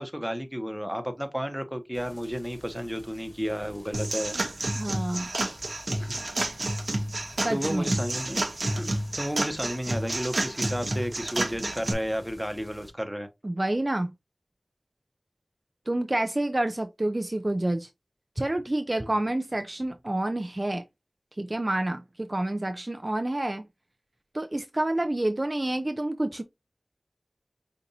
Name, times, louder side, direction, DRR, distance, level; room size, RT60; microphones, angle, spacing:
voice 1, 0.0-4.3 6.0-6.2 7.5-8.4 8.7-13.3 19.0-19.1, equal, ahead, 1.0 m, -32 dB
sound 1, 1.9-12.9, left 1 dB, 30° left, 2.1 m, -51 dB
sound 2, 3.9-11.9, right 1 dB, 65° right, 1.0 m, -30 dB
voice 2, 4.8-5.3 7.4-8.0 13.4-14.1 15.9-17.9 18.4-20.8 21.4-23.7 24.3-26.4, right 1 dB, 35° right, 0.4 m, -28 dB
5.2 x 2.5 x 2.8 m
wide cardioid pair, 45°, 0 cm